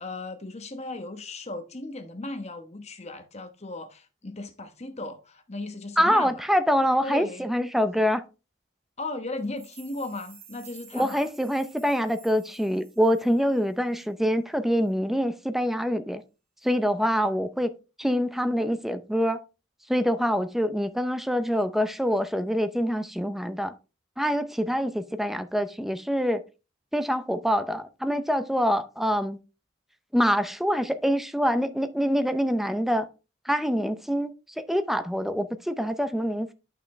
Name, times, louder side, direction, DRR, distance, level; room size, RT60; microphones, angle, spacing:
voice 1, 0.0-6.5 7.0-7.5 9.0-11.2, left 2 dB, 30° left, 1.1 m, -36 dB
voice 2, 6.0-8.2 10.9-16.2 16.6-17.7 18.0-19.4 19.9-23.7 24.2-26.4 26.9-29.4 30.1-33.1 33.5-34.3 34.6-36.5, equal, ahead, 0.6 m, -25 dB
sound 1, 9.4-13.7 14.0-14.1, right 6 dB, 55° right, 3.4 m, -52 dB
9.2 x 5.9 x 3.1 m
head